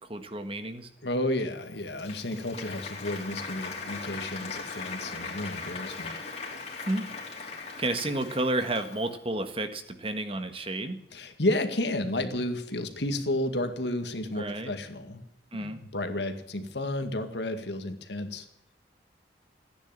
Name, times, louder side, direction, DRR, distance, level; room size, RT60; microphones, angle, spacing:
voice 1, 0.1-0.9 6.8-7.4 7.8-11.0 14.3-14.7 15.5-15.8, right 2 dB, 30° right, 8 dB, 1.5 m, -31 dB
voice 2, 1.0-6.2 11.1-15.2 15.6-18.5, left 1 dB, 70° left, 7 dB, 2.1 m, -32 dB
Applause, 1.6-9.2, left 4 dB, 40° left, 3.5 m, -39 dB
16.0 x 10.0 x 8.9 m, 0.78 s
head